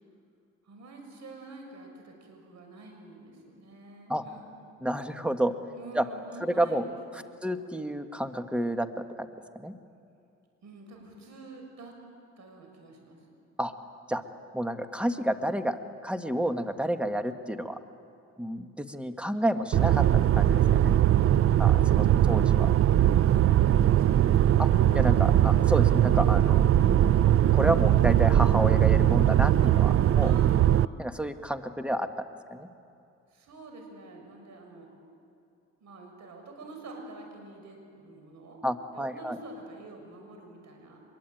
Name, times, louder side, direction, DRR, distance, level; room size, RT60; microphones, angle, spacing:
voice 1, 0.6-4.5 5.7-7.3 10.6-12.0 12.4-13.2 23.6-24.6 30.2-30.9 33.3-34.9 35.8-38.6 38.9-41.0, right 2 dB, 65° right, 3 dB, 6.7 m, -47 dB
voice 2, 4.8-5.5 5.9-6.0 6.4-6.8 7.4-9.3 9.5-9.7 13.6-13.7 14.1-14.2 14.5-17.8 18.4-20.0 20.4-20.9 21.6-22.7 24.6-26.6 27.5-30.3 31.0-32.1 32.5-32.7 38.6-39.4, right 1 dB, 5° right, 7 dB, 1.6 m, -30 dB
sound 1, 19.7-30.9, right 11 dB, 50° right, 0.5 m, -21 dB
24.5 x 22.5 x 9.1 m, 2.5 s
cardioid pair, 90°, 30 cm